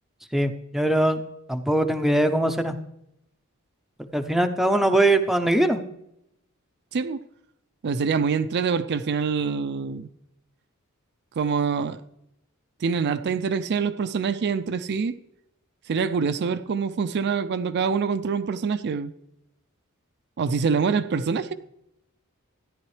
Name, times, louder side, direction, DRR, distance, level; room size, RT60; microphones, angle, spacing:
voice 1, 0.3-1.2 1.5-2.8 4.1-5.8, right 1 dB, ahead, 0.6 m, -21 dB
voice 2, 7.8-10.1 11.4-12.0 12.8-15.2 15.9-19.1 20.4-21.5, right 5 dB, 50° right, 0.4 m, -25 dB
13.5 x 10.5 x 3.2 m
head